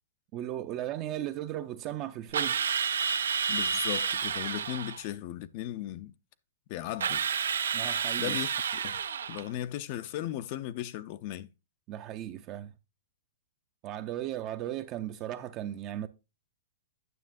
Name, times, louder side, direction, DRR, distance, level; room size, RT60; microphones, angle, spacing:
voice 1, 0.3-2.6 7.7-8.4 11.9-12.7 13.8-16.1, right 12 dB, 30° right, 0.4 m, -36 dB
Drill, 2.3-5.0 7.0-9.5, right 6 dB, 90° right, 0.6 m, -30 dB
voice 2, 3.5-6.1 6.7-7.2 8.2-9.0 9.3-11.5, left 13 dB, 40° left, 0.4 m, -37 dB
9.4 x 6.6 x 2.5 m
hypercardioid pair, 160°, 0 cm